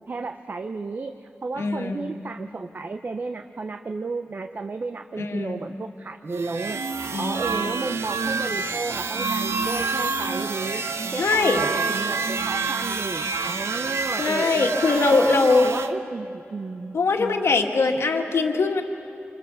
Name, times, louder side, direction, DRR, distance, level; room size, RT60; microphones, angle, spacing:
voice 1, 0.1-6.8 7.1-14.8 15.1-17.4, right 3 dB, 45° right, 8 dB, 0.7 m, -33 dB
voice 2, 1.6-2.1 5.2-5.7 7.1-7.5 11.1-11.6 14.2-15.7 16.9-18.8, left 3 dB, 80° left, 3 dB, 2.0 m, -22 dB
sound 1, 6.3-15.9, right 4 dB, 85° right, 1.0 m, -28 dB
27.0 x 26.5 x 6.9 m, 2.8 s
wide cardioid pair, 135°, 4 cm